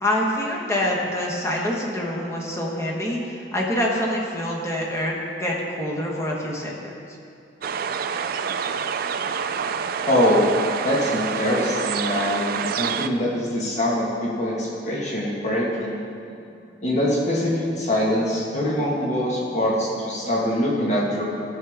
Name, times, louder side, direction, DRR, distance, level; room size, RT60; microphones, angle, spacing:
voice 1, 0.0-6.9, left 1 dB, 15° left, -3 dB, 1.4 m, -26 dB
sound 1, 7.6-13.1, right 6 dB, 55° right, 0.4 m, -27 dB
voice 2, 10.0-10.5 10.8-16.0 16.8-21.2, left 1 dB, 40° left, -5 dB, 1.7 m, -23 dB
15.0 x 6.9 x 3.6 m, 2.5 s
head